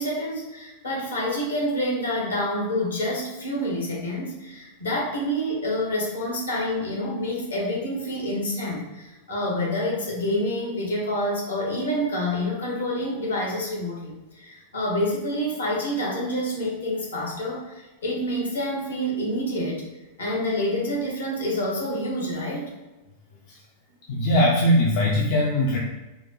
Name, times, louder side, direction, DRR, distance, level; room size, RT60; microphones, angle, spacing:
voice 1, 0.0-19.8 20.2-22.7, equal, 75° left, -2 dB, 1.1 m, -27 dB
voice 2, 24.1-25.8, left 1 dB, 50° left, -2 dB, 0.5 m, -20 dB
4.5 x 2.2 x 2.9 m, 1.1 s
figure-of-eight pair, 90°, 0 cm